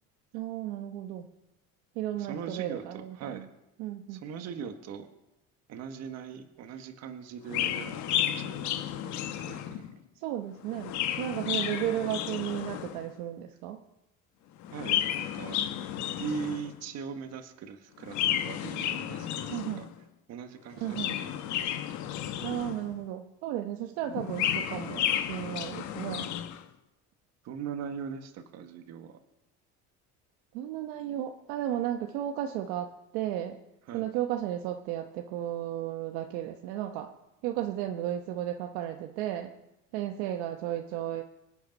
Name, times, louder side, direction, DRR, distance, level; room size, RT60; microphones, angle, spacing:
voice 1, 0.3-1.3 1.9-3.5 3.8-4.2 10.1-13.8 19.5-19.8 20.8-21.2 22.4-26.3 30.5-33.6 33.9-37.1 37.4-39.5 39.9-41.2, right 12 dB, 85° right, 4 dB, 1.1 m, -34 dB
voice 2, 2.2-2.8 3.2-3.5 4.1-5.1 5.7-9.1 9.4-9.9 14.7-15.6 16.2-19.9 20.3-21.4 27.4-29.2 33.9-34.0, right 6 dB, 55° right, 6 dB, 1.5 m, -40 dB
Chirp tweet, 7.5-9.9 10.6-13.1 14.6-16.8 18.0-19.9 20.7-23.0 24.1-26.6, left 11 dB, 60° left, 1.2 m, -32 dB
25.0 x 8.5 x 5.3 m, 0.93 s
cardioid pair, 130°, 32 cm